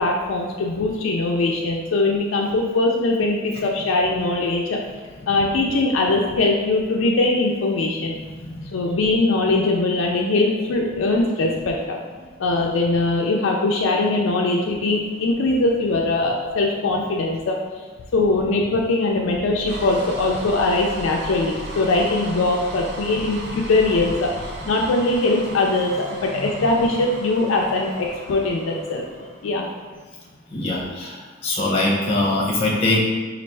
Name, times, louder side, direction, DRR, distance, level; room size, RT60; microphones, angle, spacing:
voice 1, 0.0-4.8 5.3-8.2 8.7-12.0 12.4-17.6 18.1-29.1 29.4-29.7, left 2 dB, 70° left, -1 dB, 0.4 m, -21 dB
voice 2, 8.2-8.7 26.3-26.6 30.5-33.0, left 2 dB, 30° left, -5 dB, 0.8 m, -23 dB
sound 1, 19.2-29.6, right 1 dB, 55° right, 0.5 m, -36 dB
4.2 x 2.4 x 3.2 m, 1.4 s
head